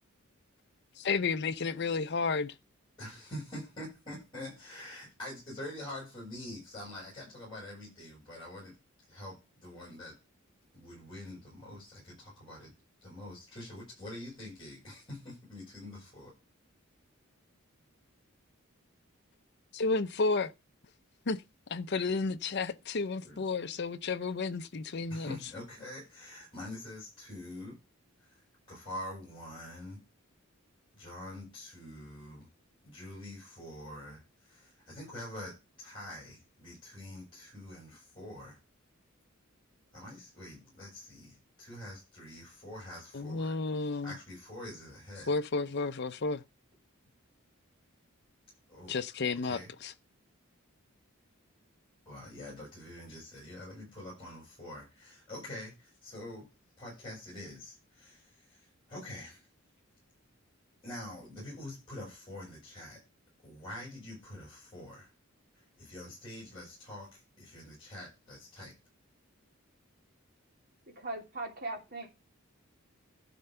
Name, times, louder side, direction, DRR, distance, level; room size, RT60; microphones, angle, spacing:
voice 1, 1.0-2.5 19.7-20.5 21.3-21.4 21.7-25.4 43.1-44.2 45.3-46.4 48.9-49.9, left 4 dB, 55° left, 0.6 m, -32 dB
voice 2, 3.0-8.8 9.1-10.2 10.7-12.7 13.0-16.3 23.2-23.4 25.1-27.8 28.2-30.0 30.9-32.5 32.8-38.6 39.9-43.6 44.0-45.3 48.7-49.7 52.1-56.5 56.8-59.5 60.8-63.0 63.4-65.1 65.5-68.7, left 1 dB, 25° left, 7.3 m, -45 dB
voice 3, 71.0-72.1, right 2 dB, 45° right, 2.7 m, -39 dB
12.0 x 4.4 x 6.8 m
head